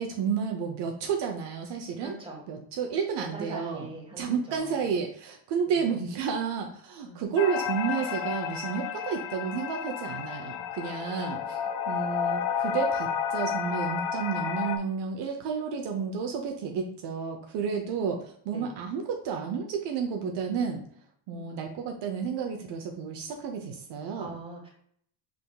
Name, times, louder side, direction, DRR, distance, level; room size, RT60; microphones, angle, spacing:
voice 1, 0.0-2.2 2.5-3.9 4.2-11.6 11.9-20.8 21.3-24.3, right 6 dB, 65° right, 3 dB, 0.7 m, -31 dB
voice 2, 2.0-2.5 3.2-4.7 5.7-5.8 7.0-7.2 18.5-18.7 21.3-21.5 24.2-24.7, right 2 dB, 10° right, -2 dB, 1.5 m, -42 dB
sound 1, 7.4-14.8, left 8 dB, 80° left, 0.5 m, -31 dB
5.0 x 3.5 x 2.2 m, 0.64 s
cardioid pair, 115°, 44 cm